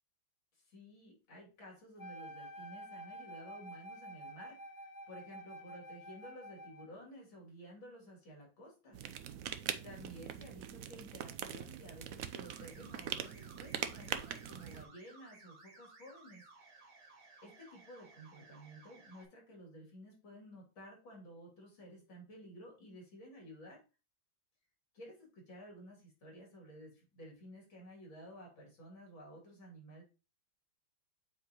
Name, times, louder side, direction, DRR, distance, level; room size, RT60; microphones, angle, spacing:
voice 1, 0.5-9.0 9.8-16.4 17.4-23.8 24.9-30.0, equal, 75° left, -2 dB, 3.7 m, -53 dB
Wind instrument woodwind instrument, 2.0-7.0, right 1 dB, 40° left, 0.7 m, -50 dB
sound 1, 8.9-14.8, right 9 dB, 75° right, 0.8 m, -42 dB
sound 2, 12.4-19.3, right 3 dB, 45° right, 2.1 m, -59 dB
8.1 x 4.6 x 3.0 m, 0.31 s
omnidirectional pair, 2.1 m